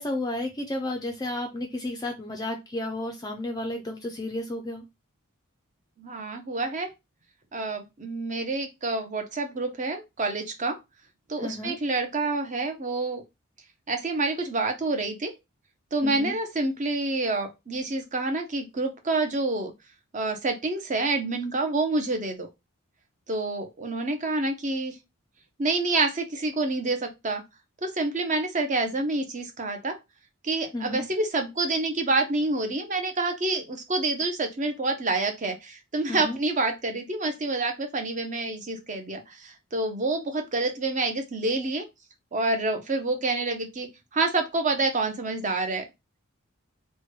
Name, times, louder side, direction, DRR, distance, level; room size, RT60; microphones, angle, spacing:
voice 1, 0.0-4.8 11.4-11.7 16.0-16.3 30.7-31.1 36.1-36.4, left 1 dB, 15° left, 3 dB, 0.4 m, -32 dB
voice 2, 6.0-6.9 7.5-10.8 11.3-13.2 13.9-15.3 15.9-19.7 20.1-22.5 23.3-25.0 25.6-27.4 27.8-30.0 30.4-41.8 42.3-45.8, right 2 dB, 35° right, 6 dB, 0.6 m, -28 dB
3.0 x 2.2 x 3.0 m, 0.23 s
head